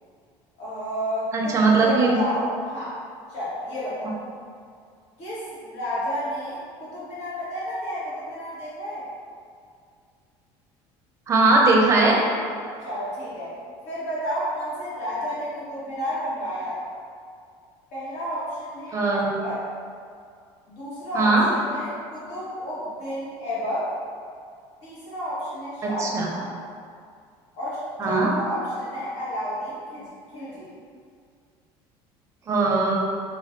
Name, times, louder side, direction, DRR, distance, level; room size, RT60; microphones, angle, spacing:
voice 1, 0.6-3.0 3.3-4.2 5.2-9.0 12.8-13.5 13.8-16.9 17.9-19.6 20.7-23.9 24.8-26.5 27.5-30.0 30.3-30.7, equal, 65° left, -9 dB, 1.4 m, -31 dB
voice 2, 1.3-2.2 11.3-12.2 18.9-19.4 21.1-21.5 25.8-26.3 28.0-28.3 32.5-33.0, right 3 dB, 25° right, -2 dB, 0.6 m, -19 dB
4.2 x 2.3 x 2.6 m, 2.2 s
cardioid pair, 135°, 11 cm